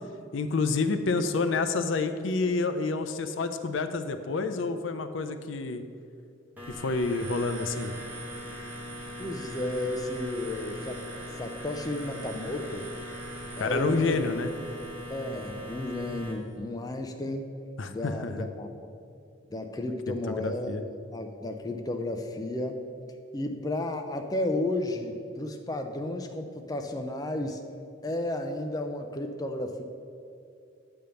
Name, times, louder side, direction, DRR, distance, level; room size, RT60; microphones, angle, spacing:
voice 1, 0.3-5.8 6.7-7.9 13.6-14.5 17.8-18.5 20.4-20.8, left 3 dB, 75° left, 9 dB, 0.5 m, -28 dB
sound 1, 6.6-16.3, equal, 10° right, 1.0 m, -40 dB
voice 2, 9.2-11.0 11.3-12.9 13.6-14.2 15.1-17.5 17.9-18.7 19.5-22.8 23.3-27.6 28.0-29.8, left 1 dB, 20° left, 5 dB, 0.4 m, -33 dB
9.0 x 3.5 x 6.8 m, 2.5 s
head